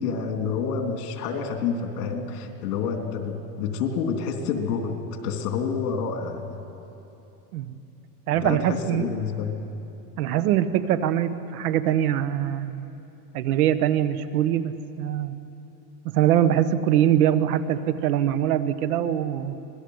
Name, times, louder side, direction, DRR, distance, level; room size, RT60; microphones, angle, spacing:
voice 1, 0.0-4.9 5.2-6.7 8.3-9.5, left 5 dB, 75° left, 4 dB, 3.2 m, -28 dB
voice 2, 8.3-9.1 10.2-12.8 13.3-15.3 16.0-19.5, right 11 dB, 70° right, 12 dB, 1.3 m, -23 dB
26.0 x 19.0 x 8.0 m, 2.9 s
supercardioid pair, 170°, 45 cm